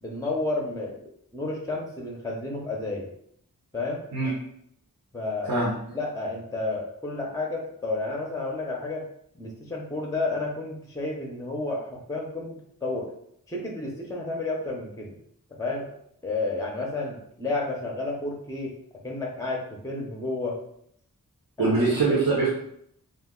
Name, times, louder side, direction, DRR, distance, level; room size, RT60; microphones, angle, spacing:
voice 1, 0.0-1.0 1.3-3.1 3.7-4.0 5.1-5.5 5.9-9.0 9.3-13.1 13.5-15.2 15.6-15.9 16.2-18.8 19.0-20.6 21.6-22.0, left 2 dB, 10° left, 0 dB, 0.6 m, -31 dB
voice 2, 21.6-22.5, right 3 dB, 75° right, -6 dB, 0.8 m, -22 dB
2.4 x 2.2 x 3.6 m, 0.70 s
wide cardioid pair, 50°, 35 cm